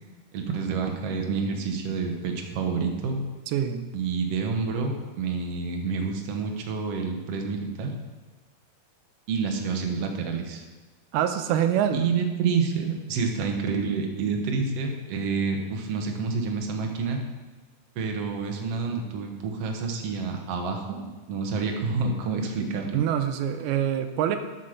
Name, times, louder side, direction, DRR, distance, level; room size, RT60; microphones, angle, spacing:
voice 1, 0.3-3.2 3.9-7.9 9.3-10.6 11.9-17.2 17.9-23.0, right 5 dB, 70° right, 3 dB, 1.5 m, -28 dB
voice 2, 3.5-3.9 11.1-12.1 22.9-24.4, right 9 dB, 85° right, 8 dB, 2.6 m, -25 dB
8.5 x 7.2 x 6.5 m, 1.3 s
omnidirectional pair, 4.4 m